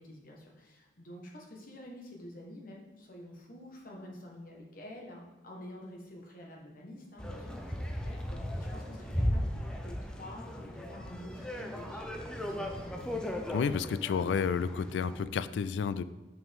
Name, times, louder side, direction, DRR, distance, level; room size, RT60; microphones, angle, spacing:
voice 1, 0.0-9.4 9.8-13.2, left 1 dB, 50° left, -1 dB, 1.3 m, -48 dB
sound 1, 7.2-15.2, equal, 5° left, 0.5 m, -36 dB
voice 2, 13.5-16.0, left 6 dB, 75° left, 15 dB, 0.3 m, -31 dB
5.8 x 5.4 x 3.6 m, 1.1 s
head